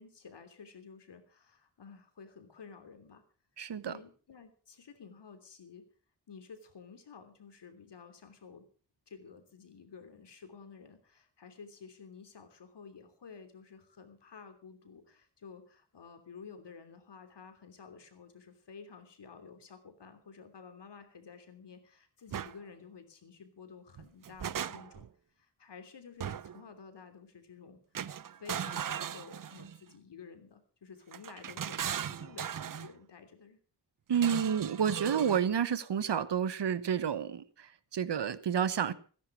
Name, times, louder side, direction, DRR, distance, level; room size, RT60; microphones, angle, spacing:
voice 1, 0.0-3.2 3.9-5.9 6.3-8.6 9.1-25.1 25.4-33.6, left 5 dB, 80° left, 8 dB, 3.2 m, -52 dB
voice 2, 3.6-4.0 34.1-38.9, right 8 dB, 80° right, 16 dB, 1.2 m, -30 dB
sound 1, 22.3-22.5 24.0-25.1 26.2-26.6 27.9-29.8 31.1-32.9 34.1-35.5, right 9 dB, 55° right, 0.6 m, -38 dB
17.0 x 10.5 x 6.1 m, 0.41 s
wide cardioid pair, 90°, 41 cm